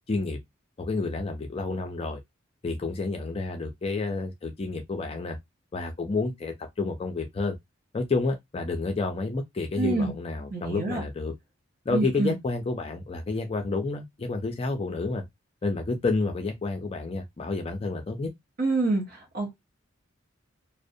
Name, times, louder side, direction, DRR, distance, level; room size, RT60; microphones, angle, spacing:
voice 1, 0.1-0.4 0.8-2.2 2.6-5.4 5.7-7.6 7.9-11.3 11.9-15.2 15.6-18.3, left 3 dB, 30° left, 0.4 m, -30 dB
voice 2, 9.8-10.1 10.5-11.0 11.9-12.4 18.6-19.6, right 3 dB, 45° right, 0.7 m, -27 dB
2.5 x 2.0 x 2.5 m
head